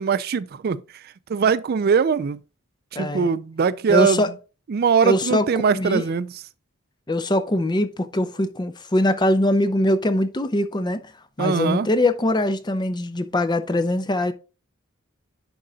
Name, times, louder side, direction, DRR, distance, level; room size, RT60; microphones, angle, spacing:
voice 1, 0.0-2.4 2.9-4.2 4.7-6.3 11.4-11.9, right 6 dB, 50° right, 0.4 m, -21 dB
voice 2, 2.9-3.3 3.9-4.3 5.0-5.4 5.7-6.0 7.1-11.0 11.4-14.3, left 1 dB, 20° left, 0.6 m, -22 dB
10.5 x 3.8 x 3.9 m
head